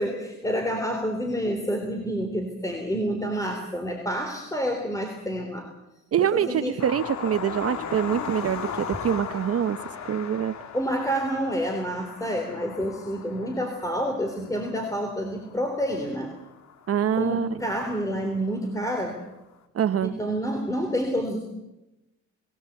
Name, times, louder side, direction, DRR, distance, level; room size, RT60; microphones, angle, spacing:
voice 1, 0.0-5.7 6.2-6.8 10.7-16.3 17.2-19.2 20.0-21.4, equal, 10° left, 3 dB, 3.6 m, -28 dB
voice 2, 6.1-9.8 10.1-10.6 16.9-17.6 19.7-20.1, right 9 dB, 50° right, 12 dB, 0.9 m, -25 dB
sound 1, 6.8-17.9 18.9-19.0 19.3-19.4, left 6 dB, 65° left, 2.1 m, -38 dB
21.5 x 17.5 x 8.3 m, 0.95 s
cardioid pair, 90°, 30 cm